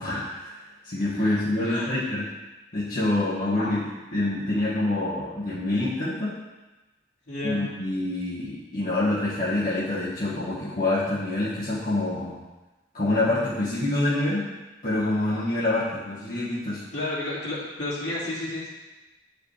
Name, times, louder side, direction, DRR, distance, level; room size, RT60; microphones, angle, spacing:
voice 1, 0.0-2.2 2.7-3.8 4.1-6.4 7.4-12.4 12.9-14.5 14.8-16.8, left 2 dB, 50° left, -10 dB, 1.4 m, -26 dB
voice 2, 1.6-1.9 3.6-3.8 7.3-7.7 16.9-18.7, left 1 dB, 70° left, -8 dB, 2.5 m, -31 dB
8.9 x 4.8 x 3.3 m, 1.1 s
head